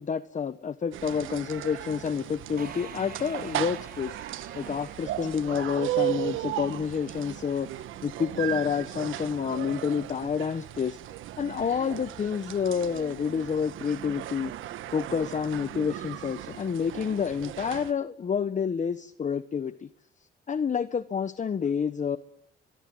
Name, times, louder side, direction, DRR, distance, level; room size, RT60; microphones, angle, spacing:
voice 1, 0.0-11.0 11.4-14.5 14.9-19.9 20.5-22.2, left 6 dB, 40° left, 1.1 m, -29 dB
sound 1, 0.9-17.9, right 13 dB, 85° right, 1.4 m, -36 dB
sound 2, 2.6-6.2, right 6 dB, 50° right, 5.3 m, -47 dB
24.0 x 23.5 x 7.8 m
cardioid pair, 90°, 20 cm